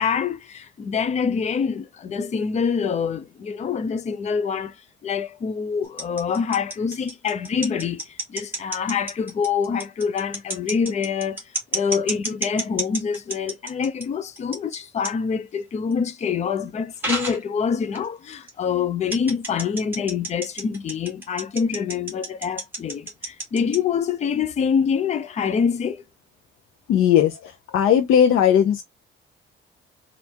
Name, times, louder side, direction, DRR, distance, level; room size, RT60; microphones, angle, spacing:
voice 1, 0.0-11.4 11.7-26.0, left 6 dB, 35° left, 0.6 m, -25 dB
sound 1, 5.8-14.0 14.4-14.8 15.0-15.1 15.9-16.0 17.0-17.4 17.9-18.0 18.3-18.5 19.1-23.8, right 2 dB, 10° right, 1.8 m, -30 dB
voice 2, 26.9-28.8, left 9 dB, 85° left, 0.7 m, -18 dB
3.5 x 2.6 x 4.4 m
cardioid pair, 160°, 21 cm